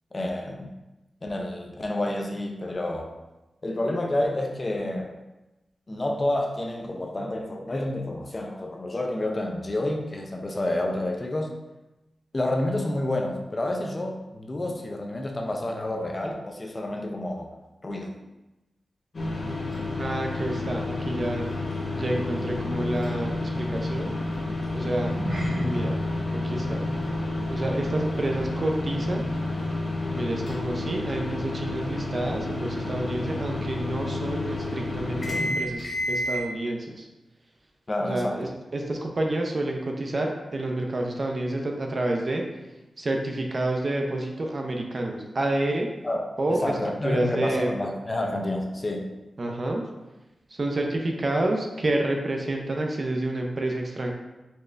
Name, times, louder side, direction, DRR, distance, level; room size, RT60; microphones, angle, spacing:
voice 1, 0.1-0.7 1.2-3.1 3.6-5.1 5.9-11.5 12.3-17.6 17.8-18.1 37.9-38.5 46.0-46.2 46.5-49.1, left 1 dB, 25° left, 1 dB, 0.4 m, -29 dB
sound 1, 19.1-36.4, left 2 dB, 45° left, 0.9 m, -30 dB
voice 2, 20.0-21.5 21.9-24.1 24.7-25.1 25.5-26.0 26.3-26.9 27.5-29.2 30.1-37.1 38.0-42.4 43.0-45.9 46.4-46.8 47.0-47.7 49.4-49.8 50.5-54.1, right 1 dB, 40° right, 1 dB, 0.5 m, -29 dB
sound 2, 24.9-29.6 29.8-30.1 30.6-30.7, equal, 85° right, 1.2 m, -37 dB
4.3 x 2.4 x 3.2 m, 1.0 s
wide cardioid pair, 140°, 0 cm